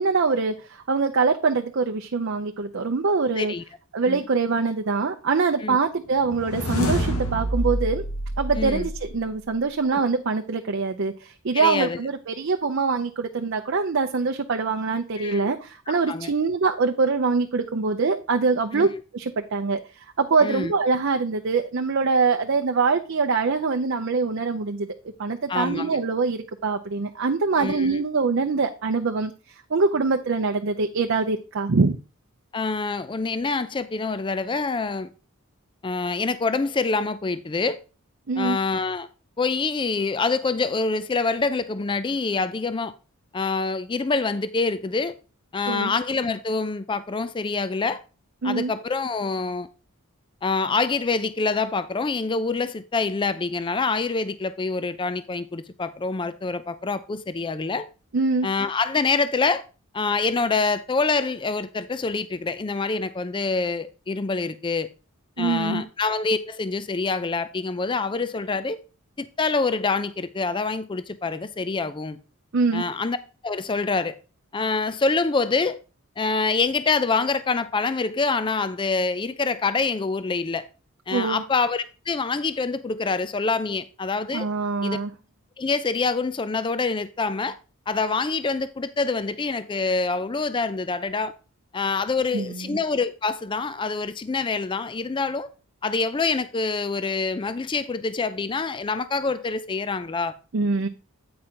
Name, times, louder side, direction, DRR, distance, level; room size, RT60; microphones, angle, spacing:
voice 1, 0.0-3.5 3.9-8.0 8.4-18.9 19.1-24.9 25.2-29.3 29.7-32.0 38.3-38.6 45.7-45.9 48.4-48.7 58.1-58.5 65.4-65.8 72.5-72.8 81.1-81.4 84.3-85.1 92.3-92.8 100.5-100.9, right 4 dB, 55° right, 0.6 m, -24 dB
sound 1, 6.2-9.5, equal, 85° left, 1.8 m, -27 dB
voice 2, 8.6-8.9 9.9-10.0 11.5-12.0 15.2-15.5 15.9-16.3 18.7-19.0 20.4-20.7 25.5-26.0 27.6-27.9 32.5-35.1 35.8-37.8 38.4-39.1 39.4-42.9 43.3-45.2 45.5-48.0 48.4-49.7 50.4-57.9 58.4-59.6 59.9-64.9 65.4-68.8 69.2-72.2 72.7-73.2 73.4-74.2 74.5-75.8 76.2-80.7 81.1-84.5 84.8-85.0 85.6-87.6 87.9-91.3 91.7-95.5 95.8-100.3, left 4 dB, 20° left, 0.4 m, -26 dB
8.6 x 5.0 x 4.4 m
head